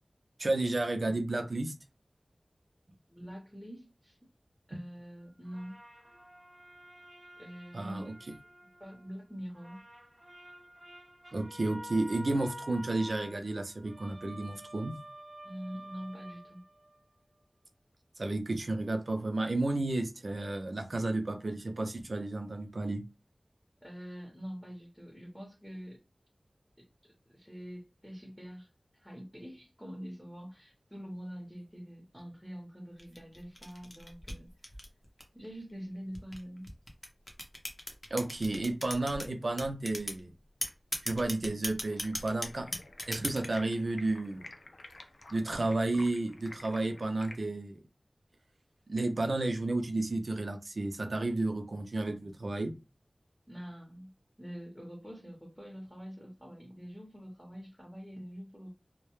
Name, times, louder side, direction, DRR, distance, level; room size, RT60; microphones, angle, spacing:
voice 1, 0.4-1.7 7.7-8.1 11.3-14.9 18.2-23.0 38.1-40.3 41.0-42.7 43.1-44.5 45.3-47.8 48.9-52.7, right 2 dB, 70° right, 0.5 m, -32 dB
voice 2, 3.1-4.2 4.7-5.8 7.4-8.1 8.8-9.8 15.4-16.6 23.8-26.0 26.8-34.7 35.3-36.7 53.5-54.1 54.4-58.7, equal, ahead, 0.9 m, -45 dB
sound 1, 5.4-9.2 9.5-17.1, equal, 20° right, 1.2 m, -50 dB
sound 2, 33.0-35.5 36.1-39.3 39.6-40.2 40.6-43.6, left 1 dB, 30° left, 0.7 m, -38 dB
Stream, 41.9-47.4, left 2 dB, 70° left, 0.4 m, -51 dB
2.1 x 2.0 x 3.0 m
wide cardioid pair, 45°, 0 cm